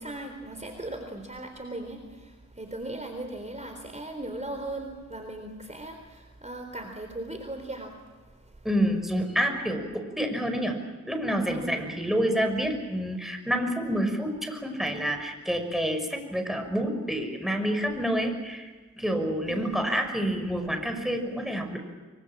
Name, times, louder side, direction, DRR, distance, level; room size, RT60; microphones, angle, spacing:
voice 1, 0.0-8.0 8.4-8.5 11.5-11.8 19.5-20.0, right 1 dB, 25° right, 4 dB, 3.8 m, -38 dB
voice 2, 8.6-10.8 11.0-18.7 19.0-21.8, equal, ahead, 5 dB, 6.0 m, -28 dB
25.0 x 25.0 x 7.4 m, 1.3 s
wide cardioid pair, 65°, 31 cm